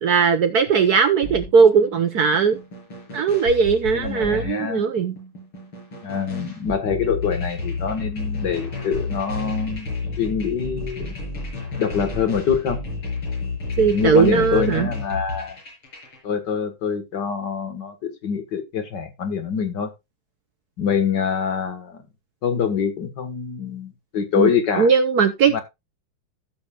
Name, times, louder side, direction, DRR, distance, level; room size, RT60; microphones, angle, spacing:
voice 1, 0.0-2.6 3.1-5.2 13.8-14.9 24.4-24.5 24.8-25.6, right 5 dB, 60° right, 1.1 m, -18 dB
sound 1, 1.2-16.2, left 3 dB, 80° left, 6.4 m, -31 dB
voice 2, 3.9-4.9 6.0-9.9 10.2-11.2 11.8-12.8 13.9-15.6 16.2-19.9 20.8-22.0 22.4-24.9 25.5-25.6, left 7 dB, 60° left, 2.0 m, -25 dB
15.5 x 7.1 x 2.4 m
omnidirectional pair, 2.3 m